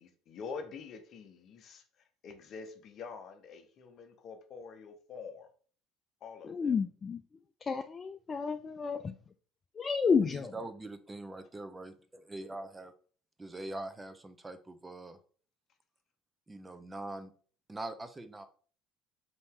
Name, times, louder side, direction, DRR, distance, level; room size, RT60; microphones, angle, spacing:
voice 1, 0.0-1.8 2.2-5.5 6.2-6.8, left 5 dB, 55° left, 7 dB, 0.7 m, -46 dB
voice 2, 6.4-7.2 7.6-9.0 9.8-10.5, left 5 dB, 35° left, 7 dB, 0.3 m, -30 dB
voice 3, 10.3-12.9 13.4-15.2 16.5-17.3 17.7-18.5, right 2 dB, 20° right, 8 dB, 0.6 m, -43 dB
4.1 x 2.8 x 3.6 m, 0.44 s
hypercardioid pair, 70°, 0 cm